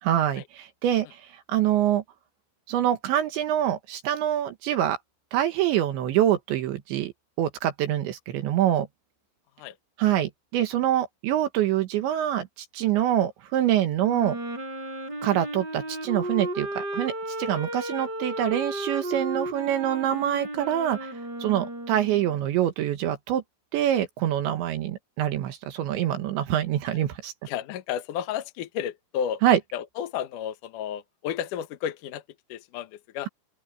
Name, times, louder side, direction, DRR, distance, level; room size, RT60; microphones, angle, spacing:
voice 1, 0.0-1.2 1.5-2.0 2.7-5.0 5.3-7.1 7.4-8.9 10.0-14.4 15.2-17.1 17.4-21.1 21.4-23.4 23.7-27.3 29.4-29.6, right 11 dB, 70° right, 3.5 m, -25 dB
Wind instrument woodwind instrument, 14.0-22.4, right 1 dB, 20° right, 5.0 m, -34 dB
voice 2, 27.5-29.4 29.7-32.2 32.5-33.3, left 9 dB, 75° left, 1.9 m, -32 dB
open air
omnidirectional pair, 5.6 m